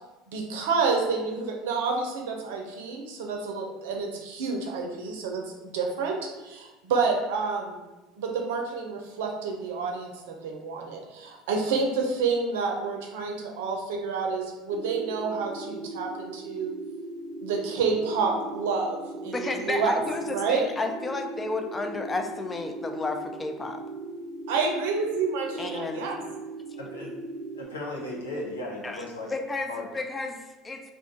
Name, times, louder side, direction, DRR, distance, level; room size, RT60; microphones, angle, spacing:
voice 1, 0.3-6.2 6.4-7.8 8.2-16.7 17.4-20.0 20.3-20.6 24.5-26.2, right 4 dB, 75° right, 2 dB, 0.5 m, -29 dB
sound 1, 14.7-27.6, right 2 dB, 5° left, 0.8 m, -39 dB
voice 2, 19.3-23.8 25.6-26.0 28.8-29.0 29.3-30.8, left 3 dB, 20° left, 5 dB, 0.4 m, -32 dB
voice 3, 26.8-27.1 27.6-29.3 29.7-29.8, left 1 dB, 85° left, -2 dB, 0.6 m, -35 dB
2.5 x 2.4 x 3.7 m, 1.1 s
hypercardioid pair, 70°, 0 cm